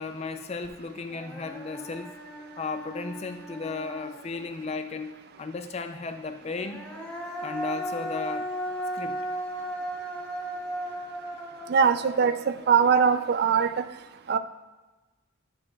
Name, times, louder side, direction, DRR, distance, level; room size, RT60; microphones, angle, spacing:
voice 1, 0.0-2.2 2.6-6.9 7.4-8.5 8.9-9.3, left 4 dB, 30° left, 9 dB, 0.4 m, -35 dB
Human voice, 0.6-0.7 1.1-4.8 6.4-13.7, right 1 dB, 5° left, 0.8 m, -37 dB
voice 2, 11.7-13.8 14.3-14.4, right 6 dB, 50° right, 11 dB, 0.3 m, -22 dB
12.0 x 6.6 x 2.3 m, 1.2 s
head